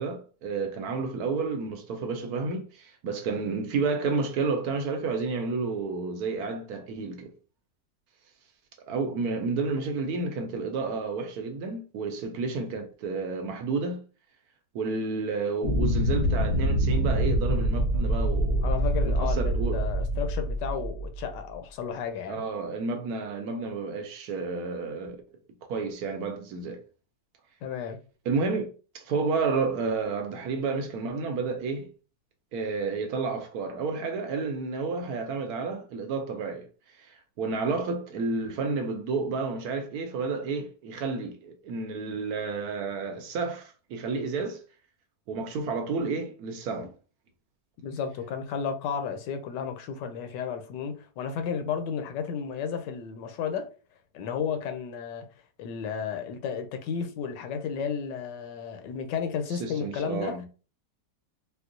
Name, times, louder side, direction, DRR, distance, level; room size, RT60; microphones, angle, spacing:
voice 1, 0.0-7.3 8.9-14.0 14.7-18.7 19.0-19.8 22.3-25.2 25.7-26.8 28.3-28.7 28.9-31.9 32.5-36.7 37.0-44.6 45.3-46.9 59.5-60.4, right 4 dB, 70° right, 1.0 m, -31 dB
sound 1, 15.6-21.4, equal, 60° left, 1.0 m, -25 dB
voice 2, 18.6-22.4 27.6-28.0 47.8-53.7 54.1-55.3 55.6-60.4, left 6 dB, 90° left, 1.3 m, -33 dB
4.4 x 2.0 x 2.5 m
omnidirectional pair, 1.9 m